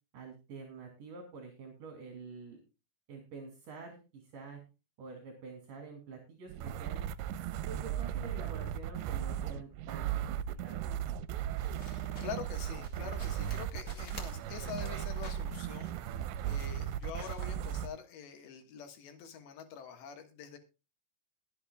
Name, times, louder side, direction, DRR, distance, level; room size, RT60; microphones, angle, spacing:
voice 1, 0.1-2.6 3.1-4.6 5.0-7.0 7.7-10.9, right 4 dB, 50° right, 4 dB, 3.6 m, -47 dB
sound 1, 6.5-17.9, right 10 dB, 80° right, 2.9 m, -36 dB
sound 2, 11.6-17.5, left 2 dB, 30° left, 1.3 m, -53 dB
voice 2, 11.9-20.6, left 7 dB, 75° left, 6 dB, 3.6 m, -45 dB
22.0 x 7.8 x 2.3 m, 0.29 s
omnidirectional pair, 5.2 m